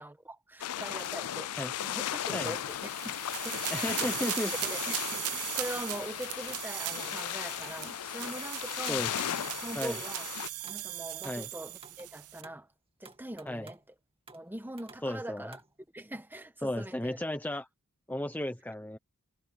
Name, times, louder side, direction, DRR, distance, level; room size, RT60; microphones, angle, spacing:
voice 1, 0.0-3.2 3.4-4.3 4.6-9.0 9.6-10.3 10.7-12.7 13.0-13.8 14.3-15.6 15.9-17.2, right 1 dB, 10° right, 1.4 m, -42 dB
sound 1, 0.6-10.5, left 11 dB, 85° left, 0.5 m, -36 dB
sound 2, 1.0-3.1 3.5-6.7 7.0-7.2 7.5-8.5 8.9-10.3 10.6-11.4 11.8-12.7 13.1-13.9 14.3-15.7, right 4 dB, 25° right, 2.3 m, -55 dB
sound 3, 2.4-12.4, right 16 dB, 80° right, 0.9 m, -39 dB
voice 2, 3.7-4.5 8.9-9.3 9.8-10.0 11.2-11.5 13.5-13.7 15.0-15.6 16.6-17.7 18.1-19.0, left 1 dB, 10° left, 0.8 m, -34 dB
head